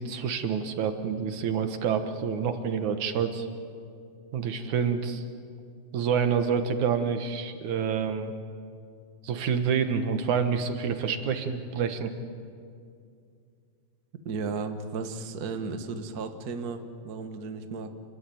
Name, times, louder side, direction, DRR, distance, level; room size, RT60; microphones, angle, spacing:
voice 1, 0.0-3.5 4.3-5.2 5.9-8.3 9.2-12.1, right 6 dB, 60° right, 7 dB, 2.5 m, -28 dB
voice 2, 14.2-17.9, right 4 dB, 75° right, 6 dB, 0.8 m, -34 dB
29.5 x 21.5 x 9.3 m, 2.4 s
omnidirectional pair, 4.3 m